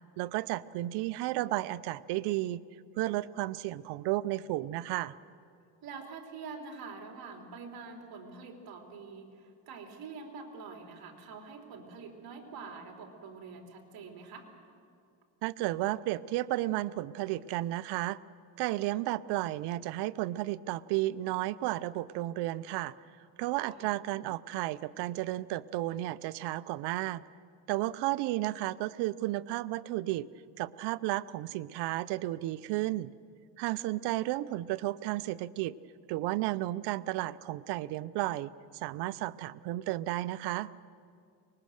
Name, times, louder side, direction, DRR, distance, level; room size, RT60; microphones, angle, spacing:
voice 1, 0.2-2.6 3.0-5.1 15.4-18.2 18.6-22.9 23.4-27.2 27.7-30.3 30.6-33.1 33.6-35.8 36.1-40.7, right 16 dB, 80° right, 18 dB, 0.7 m, -33 dB
voice 2, 5.8-14.5 23.6-23.8, right 4 dB, 60° right, 2 dB, 3.5 m, -46 dB
24.0 x 21.0 x 6.5 m, 2.3 s
cardioid pair, 105°, 40 cm